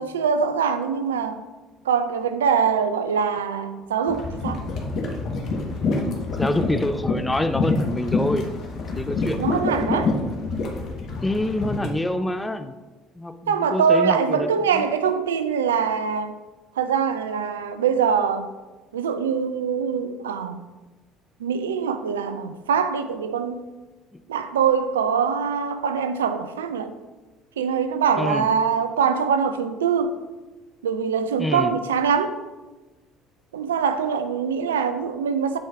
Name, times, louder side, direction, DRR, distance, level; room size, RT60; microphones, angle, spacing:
voice 1, 0.0-1.4 1.9-4.6 9.4-10.1 13.5-16.3 16.8-18.5 18.9-20.7 21.4-23.7 24.3-26.9 27.6-30.2 30.8-32.4 33.5-35.6, right 6 dB, 80° right, 10 dB, 0.4 m, -23 dB
sound 1, 4.1-11.9, left 3 dB, 55° left, 1.3 m, -26 dB
voice 2, 6.4-8.5 9.0-9.4 11.2-12.8 13.2-14.9 24.1-24.2 28.2-28.5 31.4-31.7, left 1 dB, 15° left, 10 dB, 0.6 m, -26 dB
8.8 x 4.7 x 3.6 m, 1.2 s
hypercardioid pair, 60°, 0 cm